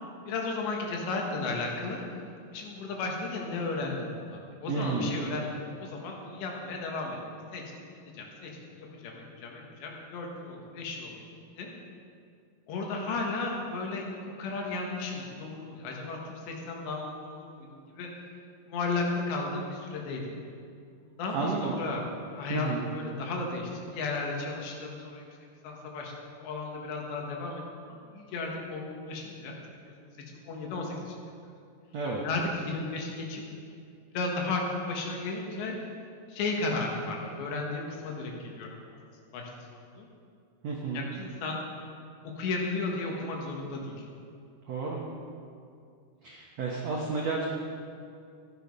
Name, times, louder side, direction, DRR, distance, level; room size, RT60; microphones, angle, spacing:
voice 1, 0.3-2.0 2.5-7.2 7.5-11.1 11.6-11.7 12.7-18.1 18.7-20.2 21.0-22.0 22.4-25.3 25.6-27.6 27.9-29.5 29.8-29.9 30.5-31.2 32.2-33.4 34.1-35.8 36.3-38.8 39.3-40.1 40.9-41.6 42.2-44.0, left 3 dB, 85° left, 0 dB, 3.9 m, -34 dB
voice 2, 4.7-5.1 21.3-21.7 22.5-22.8 31.9-32.2 40.6-41.0 44.7-45.0 46.2-47.4, right 4 dB, 75° right, -2 dB, 1.5 m, -31 dB
14.5 x 10.0 x 5.4 m, 2.4 s
omnidirectional pair, 4.9 m